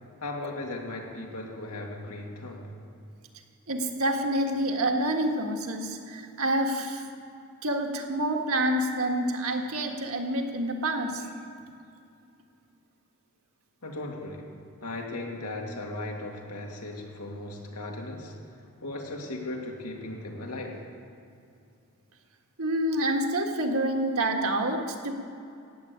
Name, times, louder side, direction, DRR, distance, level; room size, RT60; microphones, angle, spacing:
voice 1, 0.2-2.7 13.8-14.5 14.8-20.8, left 2 dB, 90° left, 1 dB, 2.5 m, -37 dB
voice 2, 3.7-7.0 7.6-11.3 22.6-25.1, right 1 dB, 65° right, 3 dB, 1.7 m, -27 dB
15.5 x 8.4 x 9.5 m, 2.5 s
head